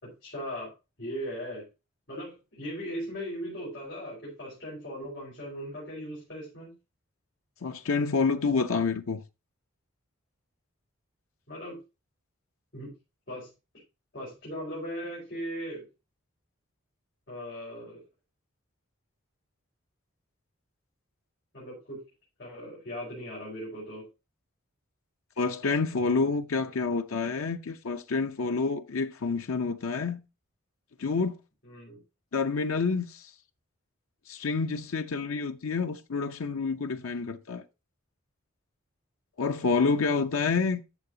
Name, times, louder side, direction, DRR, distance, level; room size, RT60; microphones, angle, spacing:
voice 1, 0.0-0.7 1.0-1.6 2.1-6.7 11.5-11.8 12.7-12.9 13.3-13.5 14.1-15.9 17.3-18.0 21.5-22.0 22.4-24.1 31.6-32.0, equal, 50° left, 5.0 m, -38 dB
voice 2, 7.6-9.2 25.4-30.2 31.0-31.4 32.3-33.3 34.3-37.6 39.4-40.8, left 4 dB, 85° left, 0.7 m, -28 dB
11.5 x 7.0 x 2.7 m
head